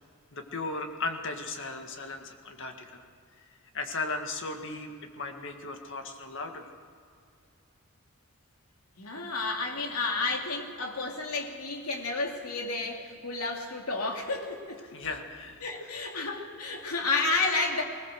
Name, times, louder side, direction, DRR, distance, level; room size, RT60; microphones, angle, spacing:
voice 1, 0.3-3.0 3.4-3.5 3.7-6.7 14.8-15.6, left 3 dB, 60° left, 4 dB, 1.9 m, -36 dB
voice 2, 9.0-14.8 15.6-17.8, left 3 dB, 80° left, 1 dB, 2.8 m, -31 dB
20.5 x 20.0 x 6.5 m, 2.4 s
head